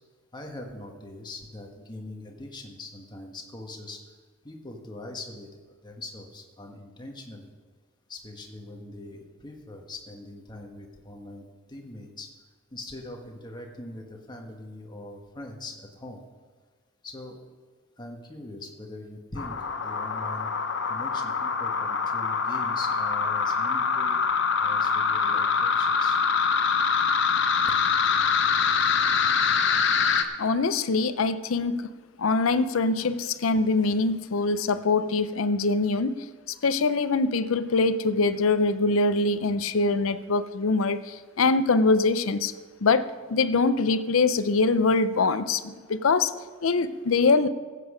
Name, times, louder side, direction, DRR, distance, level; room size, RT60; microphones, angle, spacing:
voice 1, 0.3-4.0 4.4-5.5 5.8-7.5 8.1-12.3 12.7-16.2 17.0-17.4 18.0-20.5 20.9-24.2 24.6-26.2, left 2 dB, 20° left, 1 dB, 1.5 m, -42 dB
sound 1, 19.4-30.2, left 5 dB, 60° left, 0.8 m, -24 dB
voice 2, 30.4-31.9 32.2-36.2 36.6-42.5 42.8-43.0 43.3-46.3 46.6-47.5, left 3 dB, 85° left, 13 dB, 0.6 m, -23 dB
15.0 x 8.5 x 5.0 m, 1.5 s
head